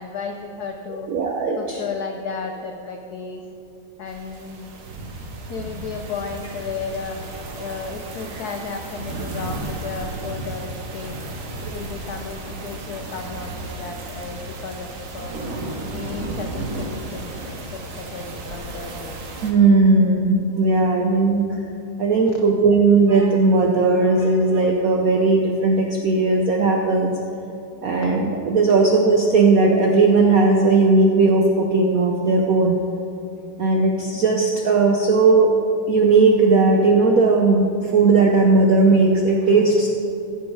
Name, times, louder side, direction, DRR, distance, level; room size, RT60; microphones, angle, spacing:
voice 1, 0.0-1.1 1.5-3.5 4.0-4.7 5.5-7.2 7.6-11.2 11.7-15.3 15.8-19.2 28.0-28.2, left 5 dB, 80° left, 4 dB, 0.8 m, -33 dB
voice 2, 0.9-1.8 19.4-21.6 22.0-27.1 27.8-32.8 33.6-35.6 35.9-39.9, right 3 dB, 75° right, 1 dB, 0.8 m, -17 dB
sound 1, 4.1-19.5, right 2 dB, 50° right, 1.1 m, -34 dB
15.0 x 6.3 x 4.6 m, 2.7 s
omnidirectional pair, 2.4 m